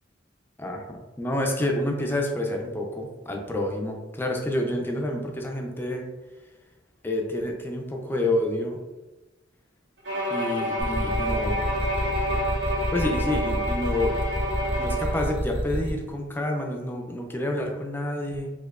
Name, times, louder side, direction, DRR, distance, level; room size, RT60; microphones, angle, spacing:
voice 1, 0.6-6.1 7.0-8.8 10.3-11.6 12.9-14.1 14.8-18.5, left 1 dB, 10° left, 1 dB, 0.5 m, -28 dB
Bowed string instrument, 10.0-15.4, equal, 85° right, 1.1 m, -28 dB
sound 1, 10.8-15.9, equal, 35° right, 0.9 m, -28 dB
4.4 x 2.8 x 2.3 m, 1.1 s
head